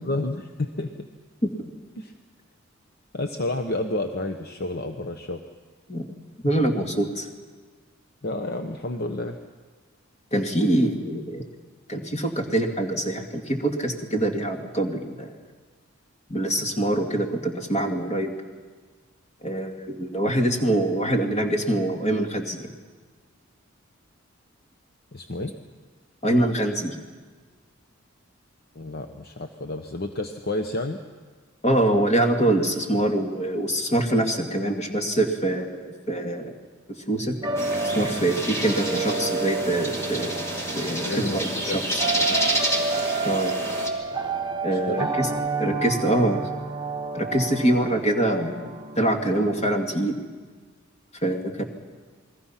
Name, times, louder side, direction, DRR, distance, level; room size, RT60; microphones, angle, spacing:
voice 1, 0.0-0.9 2.0-2.1 3.1-5.4 8.2-9.4 25.1-25.5 28.7-31.0 41.0-41.8 42.2-42.4 44.7-45.1, left 2 dB, 50° left, 6 dB, 1.0 m, -30 dB
voice 2, 6.4-7.3 10.3-11.4 11.9-15.3 16.3-18.4 19.4-22.7 26.2-26.9 31.6-36.5 37.1-37.4 37.9-40.4 40.8-42.0 43.2-43.5 44.6-45.3 45.6-46.4 47.1-50.2 51.2-51.6, right 1 dB, 30° left, 3 dB, 2.3 m, -24 dB
sound 1, 37.4-49.9, right 3 dB, 20° right, 1.0 m, -30 dB
sound 2, 37.6-43.9, right 1 dB, 15° left, 2.6 m, -29 dB
28.5 x 21.5 x 5.8 m, 1.4 s
head